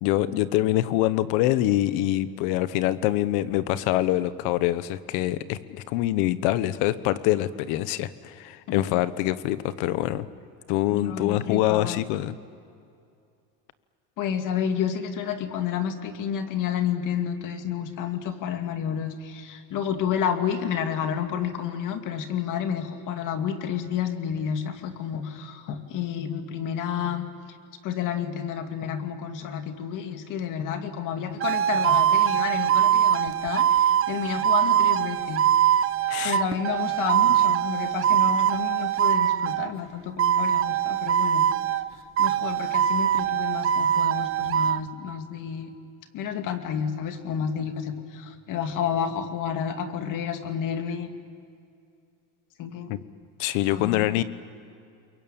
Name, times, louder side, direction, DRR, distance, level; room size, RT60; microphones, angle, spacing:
voice 1, 0.0-10.2 10.7-12.3 36.1-36.4 52.9-53.0 53.4-54.2, left 14 dB, 90° left, 14 dB, 1.2 m, -25 dB
voice 2, 10.9-12.0 14.2-27.3 27.8-35.5 36.2-41.4 42.2-45.7 46.1-51.1 52.6-52.9 53.7-54.1, left 8 dB, 60° left, 6 dB, 2.5 m, -30 dB
sound 1, 31.4-39.7 40.2-41.9 42.2-44.8, right 10 dB, 35° right, 0.8 m, -22 dB
29.0 x 22.5 x 8.9 m, 2.4 s
cardioid pair, 130°, 35 cm